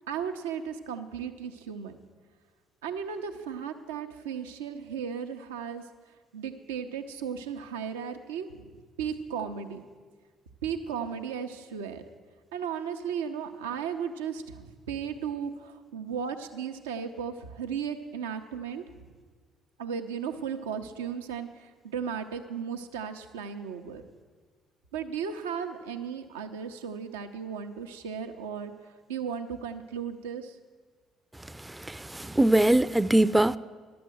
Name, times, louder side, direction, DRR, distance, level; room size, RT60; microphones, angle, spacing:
voice 1, 0.1-1.9 2.8-5.8 6.3-8.7 9.0-9.8 10.6-12.0 12.5-19.1 19.8-24.0 24.9-30.6, right 7 dB, 85° right, 0.6 m, -35 dB
voice 2, 31.9-33.6, right 1 dB, 10° right, 0.4 m, -22 dB
11.0 x 7.9 x 7.7 m
hypercardioid pair, 55°, 0 cm